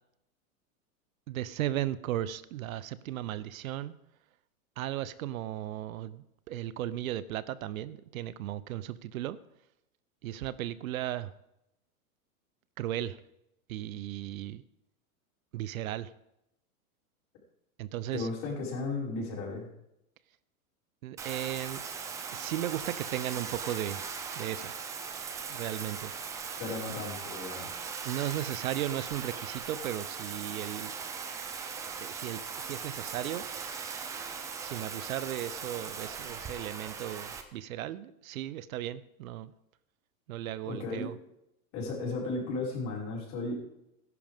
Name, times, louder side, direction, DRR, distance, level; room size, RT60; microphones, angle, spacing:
voice 1, 1.3-3.9 4.8-9.4 10.2-11.3 12.8-13.2 13.7-14.6 15.5-16.1 17.8-18.3 21.0-21.8 22.3-24.0 24.4-24.7 25.5-26.1 28.0-30.9 32.0-33.4 34.6-39.5 40.3-41.1, right 12 dB, 70° right, 17 dB, 0.8 m, -36 dB
voice 2, 18.1-19.7 26.6-27.8 40.6-41.1 41.7-43.5, left 3 dB, 40° left, -4 dB, 5.5 m, -35 dB
Bathtub (filling or washing), 21.2-37.4, right 6 dB, 10° right, 0.3 m, -39 dB
14.5 x 11.0 x 3.6 m, 0.83 s
hypercardioid pair, 130°, 43 cm